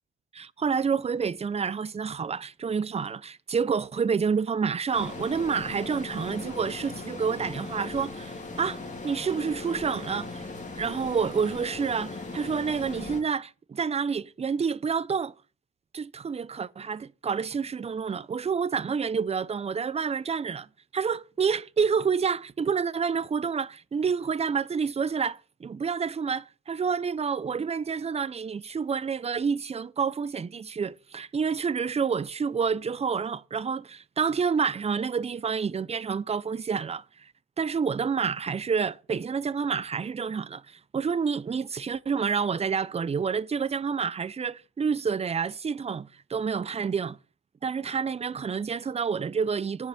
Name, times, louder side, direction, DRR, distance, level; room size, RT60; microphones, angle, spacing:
voice 1, 0.3-10.5 10.8-15.3 15.9-20.7 20.9-37.3 37.6-47.2 47.6-49.9, right 6 dB, 20° right, 0.4 m, -28 dB
sound 1, 4.9-13.2, left 3 dB, 25° left, 2.6 m, -38 dB
9.6 x 5.5 x 7.5 m
cardioid pair, 90°, 30 cm